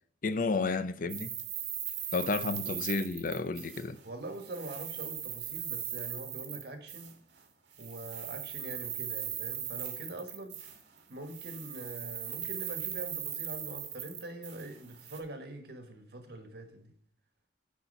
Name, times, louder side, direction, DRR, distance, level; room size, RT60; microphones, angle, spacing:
voice 1, 0.2-1.3 2.1-4.0, left 3 dB, 50° left, 0.6 m, -31 dB
sound 1, 1.1-4.1 4.3-7.1 7.7-11.0 11.3-15.2, right 10 dB, 80° right, 1.5 m, -39 dB
voice 2, 4.0-7.1 7.8-10.6 11.1-16.9, right 1 dB, 65° right, 1.4 m, -44 dB
10.5 x 4.2 x 5.3 m
head